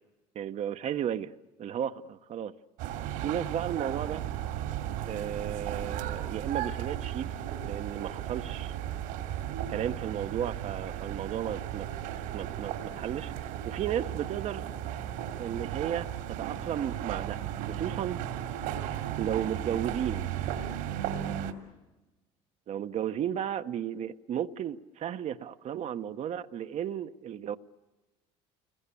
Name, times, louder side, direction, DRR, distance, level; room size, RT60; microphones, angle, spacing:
voice 1, 0.3-1.3 1.6-2.5 3.2-4.2 5.0-7.3 7.6-8.7 9.7-11.9 12.3-14.6 15.4-16.1 16.4-17.4 17.7-18.2 19.2-20.3 22.7-27.6, right 9 dB, 50° right, 1.1 m, -34 dB
sound 1, 2.8-21.5, right 11 dB, 75° right, 2.8 m, -35 dB
28.5 x 21.5 x 8.5 m
supercardioid pair, 90°, 15 cm